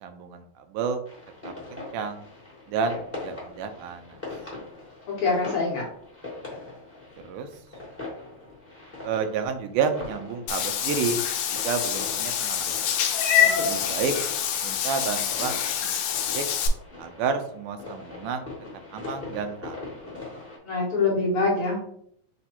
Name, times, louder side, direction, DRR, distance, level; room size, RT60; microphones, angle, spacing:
voice 1, 0.0-1.0 1.4-2.3 2.7-4.2 7.2-7.5 9.0-11.2 11.5-12.8 13.6-14.1 14.6-15.9 16.3-16.4 17.0-18.5 18.9-19.8, right 6 dB, 85° right, 7 dB, 2.0 m, -30 dB
sound 1, 1.1-20.6, left 3 dB, 10° left, 0.8 m, -41 dB
voice 2, 5.1-5.8 13.4-13.7 20.6-21.9, left 3 dB, 70° left, -4 dB, 1.3 m, -25 dB
Meow / Water / Bathtub (filling or washing), 10.5-16.7, left 9 dB, 85° left, 1.5 m, -26 dB
5.0 x 2.3 x 4.2 m, 0.65 s
omnidirectional pair, 3.6 m